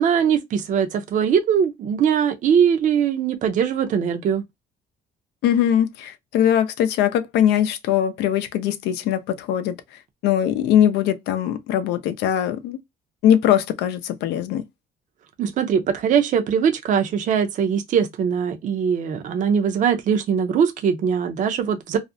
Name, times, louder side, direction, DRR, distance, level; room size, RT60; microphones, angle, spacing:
voice 1, 0.0-4.4 15.4-22.0, right 7 dB, 50° right, 0.5 m, -21 dB
voice 2, 5.4-9.8 10.2-12.8 13.2-14.6, left 10 dB, 85° left, 0.5 m, -21 dB
2.4 x 2.0 x 2.6 m
cardioid pair, 110°, 17 cm